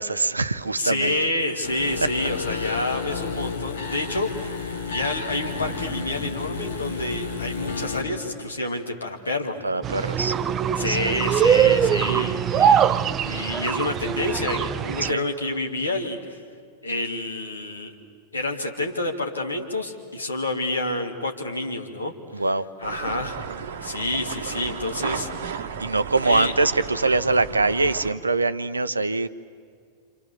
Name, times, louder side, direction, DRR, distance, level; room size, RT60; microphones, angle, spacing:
voice 1, 0.0-1.1 2.5-2.6 9.6-10.4 10.9-11.2 15.0-15.2 22.3-22.6 25.8-29.3, right 3 dB, 80° right, 14 dB, 0.8 m, -23 dB
voice 2, 0.8-10.1 10.8-16.4 16.8-17.9 18.3-22.1 22.8-23.4 23.8-25.3 26.2-26.5, left 2 dB, 75° left, 2 dB, 2.7 m, -28 dB
sound 1, 1.6-8.0, left 5 dB, 60° left, 4.4 m, -31 dB
sound 2, 9.8-15.1, right 8 dB, 30° right, 0.7 m, -22 dB
sound 3, 22.8-28.1, right 6 dB, 60° right, 1.4 m, -34 dB
28.5 x 27.5 x 7.2 m, 2.1 s
figure-of-eight pair, 90°, 0 cm